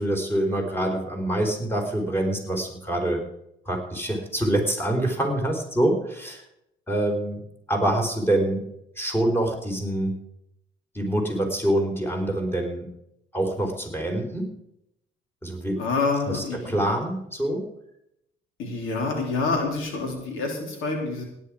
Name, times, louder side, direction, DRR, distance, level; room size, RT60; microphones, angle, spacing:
voice 1, 0.0-3.2 3.7-6.4 6.9-7.4 7.7-8.7 9.0-10.2 10.9-12.9 13.3-14.5 15.4-15.8 16.3-17.7, right 1 dB, 10° left, 2 dB, 3.9 m, -25 dB
voice 2, 15.8-16.9 18.6-21.2, left 3 dB, 90° left, 2 dB, 3.5 m, -27 dB
17.0 x 10.0 x 4.9 m, 0.80 s
cardioid pair, 90°, 20 cm